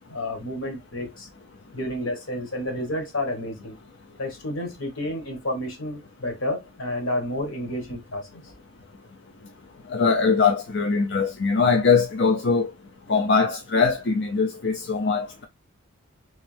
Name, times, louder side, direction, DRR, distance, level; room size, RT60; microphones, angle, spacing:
voice 1, 0.1-1.3 1.7-3.7 4.2-8.4, left 1 dB, 75° left, 1.4 m, -30 dB
voice 2, 9.9-12.7 13.1-15.5, left 5 dB, 55° left, 0.5 m, -21 dB
3.4 x 3.1 x 3.2 m
head